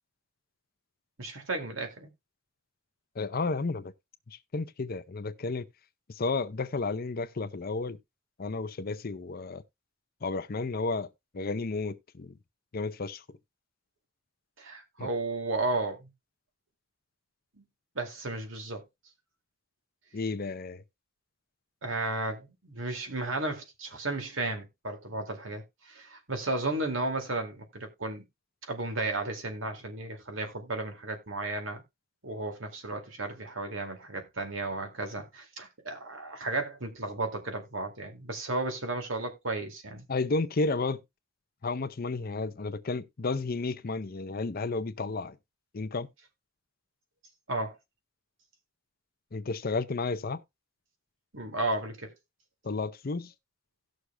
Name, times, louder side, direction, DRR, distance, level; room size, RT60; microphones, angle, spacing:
voice 1, 1.2-2.1 14.6-16.1 17.6-17.7 18.0-18.8 21.8-28.2 28.7-31.8 32.2-40.0 47.5-47.8 51.3-52.1, right 2 dB, 90° right, 2.3 m, -34 dB
voice 2, 3.2-3.9 4.3-5.6 6.2-8.0 8.4-9.6 10.2-11.1 11.3-12.3 12.7-13.2 15.0-15.1 20.1-20.8 40.1-41.0 41.6-45.4 45.7-46.1 49.3-50.4 52.6-53.3, left 3 dB, 50° left, 0.6 m, -32 dB
17.0 x 6.5 x 2.2 m
head